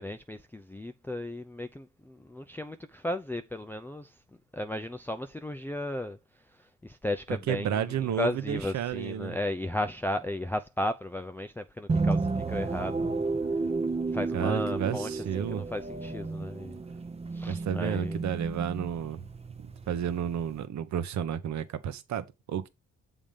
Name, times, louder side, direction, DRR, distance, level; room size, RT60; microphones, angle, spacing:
voice 1, 0.0-4.2 4.5-13.2 13.5-13.7 14.1-16.8 17.3-18.2, left 1 dB, 5° left, 0.5 m, -35 dB
voice 2, 7.5-9.4 14.3-15.6 17.5-19.2 19.9-22.7, right 9 dB, 65° right, 1.0 m, -31 dB
sound 1, 11.9-20.6, right 3 dB, 20° right, 0.8 m, -32 dB
7.1 x 3.6 x 5.1 m
cardioid pair, 90°, 30 cm